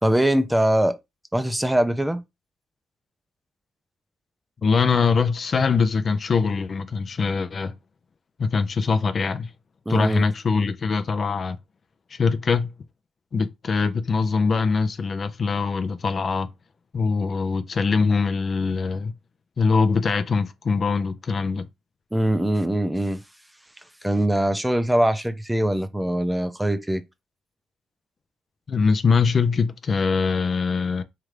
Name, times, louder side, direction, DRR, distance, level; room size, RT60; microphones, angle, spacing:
voice 1, 0.0-1.0 1.3-2.2 9.9-10.3 22.1-23.2 24.0-27.0, right 1 dB, 5° right, 0.5 m, -22 dB
voice 2, 4.6-7.7 8.4-9.5 9.9-11.6 12.1-12.7 13.3-16.5 16.9-19.1 19.6-21.7 28.7-31.0, left 5 dB, 45° left, 0.4 m, -22 dB
3.7 x 3.3 x 3.1 m
cardioid pair, 90°, 0 cm